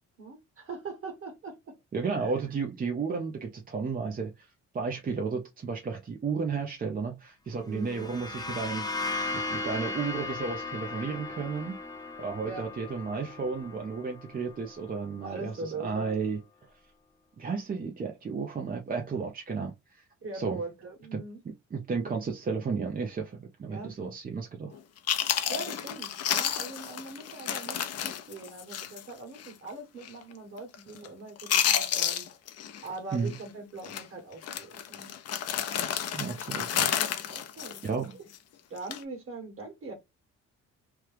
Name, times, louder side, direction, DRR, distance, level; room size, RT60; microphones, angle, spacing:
voice 1, 0.2-1.7 2.2-2.3 7.6-8.1 12.4-12.7 15.2-16.2 20.2-21.4 23.7-23.9 25.5-32.3 32.8-35.1 37.3-37.8 38.7-39.9, right 3 dB, 45° right, 1.5 m, -41 dB
voice 2, 1.9-4.5 4.7-8.9 9.3-11.8 12.2-16.4 17.4-20.0 20.3-20.6 21.1-21.2 21.7-24.7 33.1-33.3 36.1-36.9 37.8-38.1, right 5 dB, 30° right, 0.6 m, -33 dB
sound 1, 7.7-15.3, left 3 dB, 15° left, 0.7 m, -37 dB
Chewing mastication, 24.7-24.8 25.1-29.1 29.4-29.5 30.0-30.3 30.6-31.1 31.4-32.9 33.1-33.4 33.8-34.0 34.4-38.4 38.8-39.0, left 9 dB, 55° left, 0.6 m, -30 dB
3.1 x 2.3 x 3.3 m
cardioid pair, 90°, 30 cm